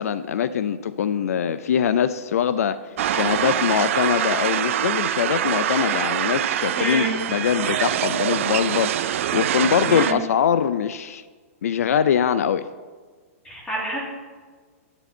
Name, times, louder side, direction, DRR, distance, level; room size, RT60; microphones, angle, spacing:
voice 1, 0.0-2.8 3.1-11.2 11.6-12.7, left 8 dB, 80° left, 14 dB, 0.5 m, -23 dB
sound 1, 3.0-10.1, right 11 dB, 60° right, 0.5 m, -24 dB
voice 2, 6.8-7.1 9.9-10.1 13.4-14.0, right 1 dB, 10° left, -4 dB, 3.0 m, -27 dB
9.9 x 8.9 x 4.3 m, 1.5 s
hypercardioid pair, 155°, 8 cm